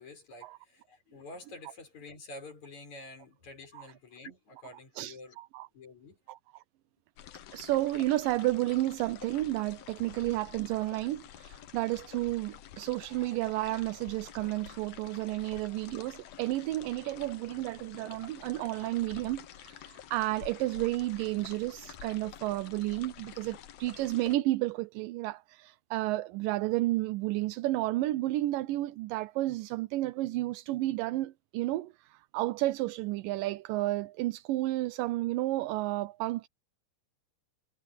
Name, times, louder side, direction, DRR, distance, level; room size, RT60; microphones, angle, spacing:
voice 1, 0.0-5.4 5.7-6.2, left 2 dB, 50° left, 8.0 m, -48 dB
voice 2, 5.0-5.7 6.3-6.6 7.5-36.5, right 17 dB, 80° right, 2.2 m, -32 dB
sound 1, 7.2-24.4, left 10 dB, 70° left, 1.6 m, -49 dB
omnidirectional pair, 4.2 m